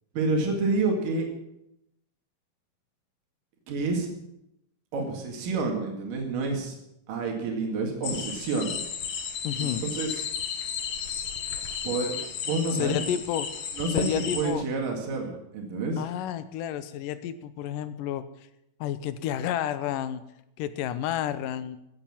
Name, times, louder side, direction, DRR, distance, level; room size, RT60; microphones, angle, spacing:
voice 1, 0.2-1.3 3.7-4.1 4.9-6.8 7.1-8.8 9.6-10.2 11.8-12.2 12.4-13.0 13.7-16.0, right 3 dB, 80° right, 1 dB, 3.7 m, -28 dB
sound 1, 8.0-14.5, left 7 dB, 65° left, 2.6 m, -33 dB
voice 2, 9.4-9.8 12.8-13.5 13.9-14.7 16.0-18.3 18.8-20.2 20.6-21.8, left 11 dB, 85° left, 13 dB, 2.5 m, -30 dB
16.0 x 8.8 x 7.2 m, 0.83 s
omnidirectional pair, 3.8 m